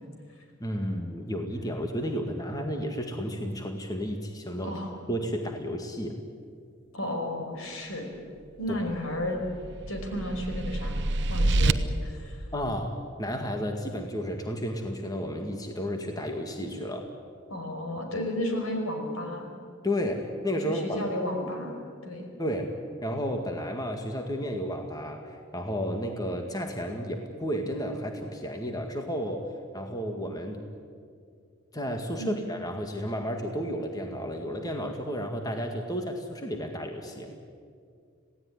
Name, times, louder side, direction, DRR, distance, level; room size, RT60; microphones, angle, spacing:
voice 1, 0.6-4.7 5.1-6.1 8.7-8.8 12.5-17.1 19.8-21.0 22.4-22.7 23.0-29.5 29.7-30.6 31.7-37.3, equal, 20° left, 3 dB, 1.9 m, -32 dB
voice 2, 6.9-8.1 8.6-9.4 9.9-11.0 11.3-11.7 12.0-12.5 17.5-19.5 20.6-22.2 32.2-32.4, left 1 dB, 80° left, 3 dB, 5.4 m, -33 dB
sound 1, 8.9-11.7, right 2 dB, 55° right, 1.0 m, -27 dB
26.5 x 17.5 x 9.8 m, 2.2 s
head